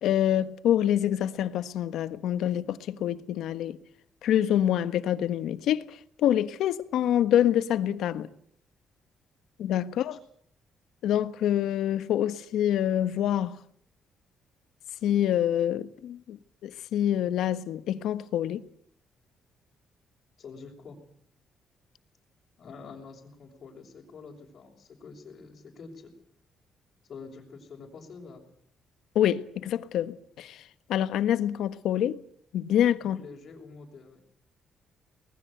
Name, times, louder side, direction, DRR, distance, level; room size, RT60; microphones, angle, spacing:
voice 1, 0.0-3.8 4.2-8.3 9.6-10.2 11.0-13.6 15.0-16.4 16.6-18.6 29.1-30.6 30.9-32.2 32.5-33.2, left 11 dB, 80° left, 1.3 m, -26 dB
voice 2, 20.4-21.0 22.6-26.1 27.1-28.4 33.2-34.2, left 4 dB, 55° left, 5.8 m, -46 dB
23.5 x 20.5 x 8.0 m
cardioid pair, 90°, 0 cm